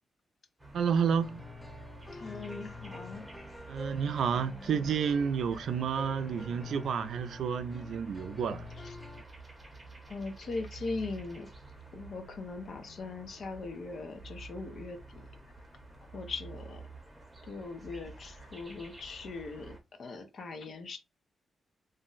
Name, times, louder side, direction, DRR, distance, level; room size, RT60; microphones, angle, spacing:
sound 1, 0.6-19.8, right 3 dB, 15° right, 0.8 m, -50 dB
voice 1, 0.7-1.4 3.7-8.7, right 7 dB, 75° right, 0.3 m, -30 dB
sound 2, 1.2-9.2, left 3 dB, 5° left, 0.4 m, -47 dB
voice 2, 2.1-3.3 10.1-11.5 11.9-15.2 16.1-16.8 17.5-21.0, left 3 dB, 50° left, 0.6 m, -40 dB
2.6 x 2.1 x 3.8 m
wide cardioid pair, 160°, 0 cm